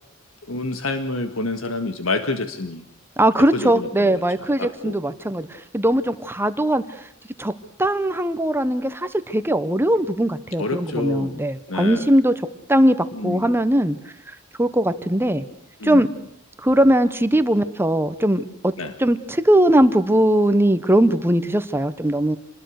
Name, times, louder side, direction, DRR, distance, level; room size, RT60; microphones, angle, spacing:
voice 1, 0.5-2.8 3.5-4.2 4.6-5.0 10.6-11.4 11.7-12.1 13.1-13.5 15.8-16.1 18.8-18.9, left 2 dB, 80° left, 8 dB, 1.9 m, -28 dB
voice 2, 3.2-7.1 7.4-7.5 7.8-12.3 12.7-14.0 14.6-15.4 15.8-16.1 16.6-18.7 19.0-22.4, right 1 dB, 10° right, 11 dB, 1.1 m, -20 dB
27.0 x 21.0 x 6.6 m, 0.72 s
head